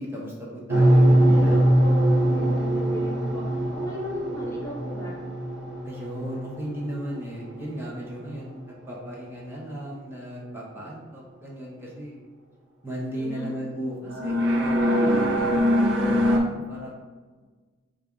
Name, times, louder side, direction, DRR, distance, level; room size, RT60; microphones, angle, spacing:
voice 1, 0.0-1.7 5.8-12.2 12.8-15.5 15.8-16.9, equal, 15° right, -4 dB, 0.8 m, -36 dB
sound 1, 0.7-7.2 7.8-8.1 14.1-16.4, equal, 85° right, 0.6 m, -22 dB
voice 2, 1.2-5.2 13.1-13.6 14.4-14.5 14.8-15.4, left 1 dB, 15° left, -4 dB, 0.8 m, -36 dB
5.3 x 2.4 x 3.5 m, 1.4 s
head